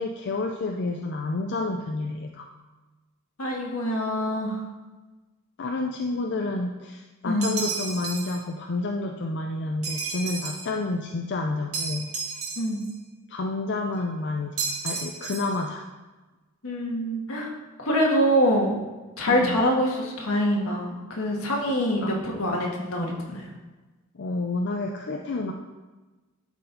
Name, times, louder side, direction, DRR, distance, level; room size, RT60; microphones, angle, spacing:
voice 1, 0.0-2.5 5.6-12.1 13.3-14.6 14.8-15.8 19.2-19.6 22.0-22.2 24.1-25.5, left 2 dB, 55° left, 3 dB, 0.5 m, -29 dB
voice 2, 3.4-4.6 7.2-7.5 12.6-12.8 16.6-17.5 17.8-18.8 19.2-23.5, equal, 75° left, -1 dB, 1.6 m, -25 dB
sound 1, 7.4-8.4 9.8-10.7 11.7-12.9 14.6-15.6, right 4 dB, 85° right, 1.6 m, -32 dB
11.5 x 4.3 x 3.9 m, 1.2 s
head